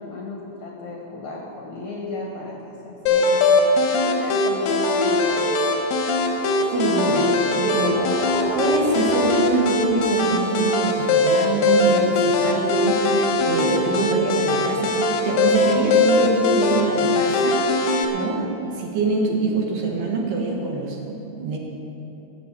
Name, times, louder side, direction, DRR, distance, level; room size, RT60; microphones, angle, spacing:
voice 1, 0.0-3.6 4.0-5.6, left 2 dB, 60° left, -2 dB, 2.0 m, -34 dB
sound 1, 2.9-5.8 6.1-16.6, left 2 dB, 45° left, 1.7 m, -37 dB
sound 2, 3.1-18.1, left 2 dB, 85° left, 3.4 m, -21 dB
voice 2, 6.7-8.0 8.6-17.6 18.1-21.6, right 3 dB, 70° right, -1 dB, 3.3 m, -24 dB
15.0 x 7.1 x 8.4 m, 3.0 s
omnidirectional pair, 5.2 m